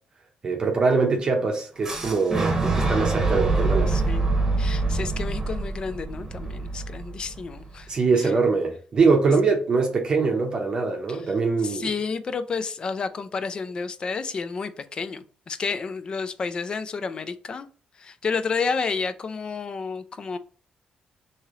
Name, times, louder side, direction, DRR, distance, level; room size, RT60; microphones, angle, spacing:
voice 1, 0.4-3.9 7.9-11.9, right 4 dB, 35° right, 0.7 m, -23 dB
Fire / Explosion, 1.8-7.7, right 3 dB, 20° right, 1.0 m, -25 dB
voice 2, 3.9-4.3 4.6-7.9 8.2-8.3 11.1-11.2 11.6-17.7 18.0-20.4, left 5 dB, 35° left, 0.4 m, -30 dB
3.1 x 2.9 x 3.6 m
cardioid pair, 140°, 2 cm